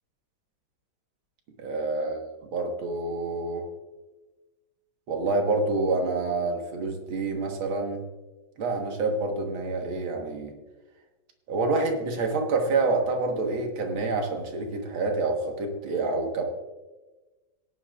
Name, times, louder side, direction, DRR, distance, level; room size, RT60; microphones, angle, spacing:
voice 1, 1.6-3.6 5.1-8.0 8.6-10.5 11.5-16.4, right 3 dB, 80° right, 3 dB, 2.2 m, -27 dB
18.0 x 10.5 x 2.4 m, 1.2 s
omnidirectional pair, 2.2 m